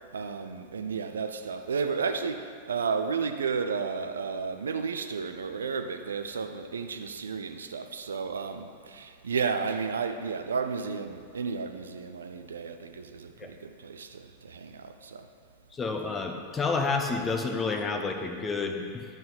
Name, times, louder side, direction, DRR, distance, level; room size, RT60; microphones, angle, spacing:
voice 1, 0.1-15.3, right 5 dB, 70° right, 0.4 m, -32 dB
voice 2, 15.7-19.0, left 4 dB, 20° left, 0.8 m, -29 dB
10.5 x 4.0 x 5.7 m
figure-of-eight pair, 90°, 0 cm